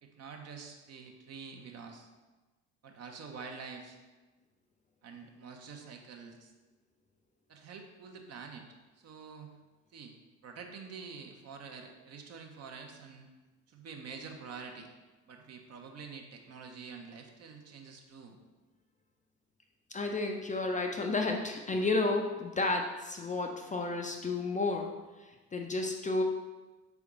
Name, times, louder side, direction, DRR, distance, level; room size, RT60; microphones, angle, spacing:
voice 1, 0.0-2.1 2.8-4.0 5.0-6.5 7.5-9.6 9.9-10.2 10.4-13.3 13.7-14.9 15.3-18.4, right 5 dB, 45° right, 3 dB, 0.7 m, -47 dB
voice 2, 19.9-24.9 25.2-26.2, left 3 dB, 20° left, 2 dB, 0.4 m, -32 dB
3.7 x 3.5 x 3.6 m, 1.2 s
hypercardioid pair, 60°, 36 cm